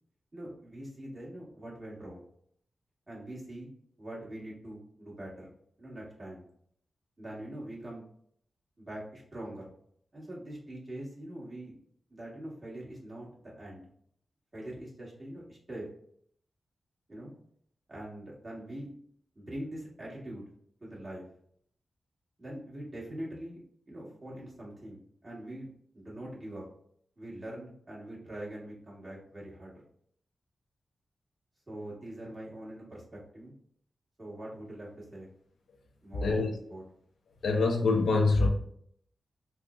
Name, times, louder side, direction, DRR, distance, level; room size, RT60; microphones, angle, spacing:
voice 1, 0.3-2.2 3.1-3.7 4.0-5.5 5.8-6.4 7.2-8.0 8.8-9.7 10.1-11.7 12.1-13.9 14.5-15.9 17.1-17.3 17.9-18.9 19.3-20.4 20.8-21.2 22.4-23.6 23.9-25.7 25.9-26.6 27.2-29.8 31.7-33.5 34.2-35.3 36.0-36.8, right 1 dB, 35° right, -6 dB, 1.5 m, -43 dB
voice 2, 37.4-38.5, left 3 dB, 85° left, 2 dB, 0.5 m, -24 dB
3.5 x 2.0 x 2.4 m, 0.66 s
cardioid pair, 55°, 0 cm